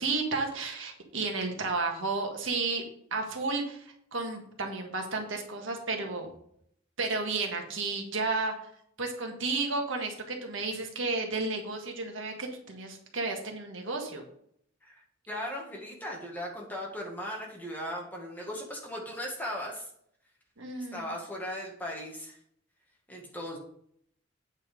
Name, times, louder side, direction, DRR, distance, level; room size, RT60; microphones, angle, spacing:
voice 1, 0.0-2.8 3.1-6.3 7.0-8.7 9.0-14.2 20.6-21.1, right 3 dB, 70° right, 2 dB, 1.7 m, -32 dB
voice 2, 14.8-19.9 20.9-22.4 23.1-23.6, equal, 10° left, -2 dB, 1.8 m, -38 dB
8.7 x 5.5 x 5.2 m, 0.68 s
head